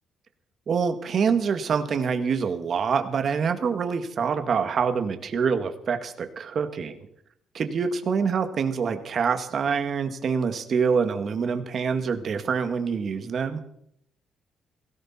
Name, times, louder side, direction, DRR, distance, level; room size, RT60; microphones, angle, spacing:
voice 1, 0.7-7.0 7.5-13.6, right 6 dB, 55° right, 7 dB, 1.9 m, -25 dB
18.0 x 16.0 x 4.4 m, 0.73 s
cardioid pair, 90°, 0 cm